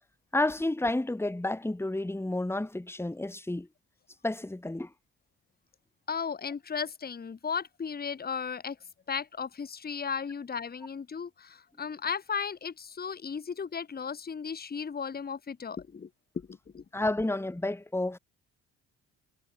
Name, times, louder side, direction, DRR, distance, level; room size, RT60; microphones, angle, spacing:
voice 1, 0.3-3.7 4.2-4.9 16.9-18.2, left 2 dB, 5° left, 1.4 m, -30 dB
voice 2, 6.1-8.8 9.1-16.1 16.3-16.8, left 6 dB, 25° left, 0.9 m, -35 dB
supercardioid pair, 60°, 41 cm